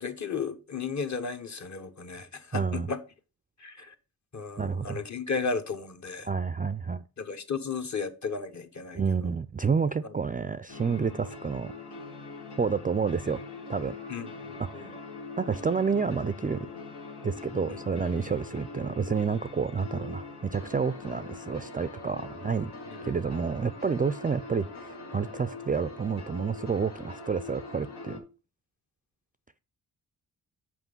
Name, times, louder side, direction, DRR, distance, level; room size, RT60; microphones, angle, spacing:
voice 1, 0.0-3.0 3.6-3.9 4.3-6.3 7.2-9.0 14.1-14.9 17.7-17.8 22.9-23.0, left 5 dB, 45° left, 1.1 m, -34 dB
voice 2, 2.5-2.9 4.6-5.0 6.2-7.0 8.9-11.7 12.6-13.4 13.7-13.9 14.6-14.9 15.4-16.7 17.2-22.7 23.0-28.2, right 5 dB, 25° right, 0.3 m, -29 dB
sound 1, 10.7-28.2, left 3 dB, 85° left, 1.5 m, -43 dB
6.0 x 4.9 x 5.3 m
cardioid pair, 60°, 39 cm